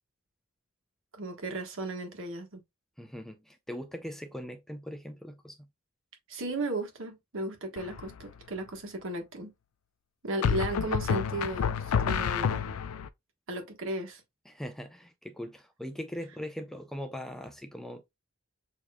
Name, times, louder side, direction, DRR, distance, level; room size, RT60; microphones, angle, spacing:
voice 1, 1.1-2.6 6.3-9.5 10.2-12.7 13.5-14.2, right 1 dB, 65° right, 1.3 m, -35 dB
voice 2, 3.0-5.7 14.5-18.1, equal, ahead, 0.4 m, -40 dB
sound 1, 7.8-8.2 10.4-13.1, left 7 dB, 90° left, 0.4 m, -29 dB
6.7 x 2.9 x 2.3 m
head